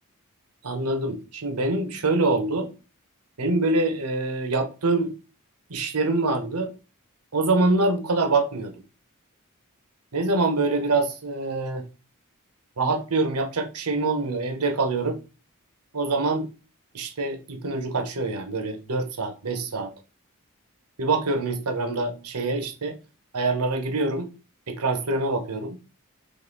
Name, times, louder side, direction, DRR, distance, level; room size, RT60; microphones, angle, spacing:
voice 1, 0.6-2.7 3.4-5.1 5.7-6.7 7.3-8.7 10.1-11.9 12.8-15.2 15.9-16.5 16.9-19.9 21.0-23.0 23.3-24.3 24.7-25.8, right 3 dB, 85° right, 1.0 m, -25 dB
4.1 x 3.3 x 3.9 m
head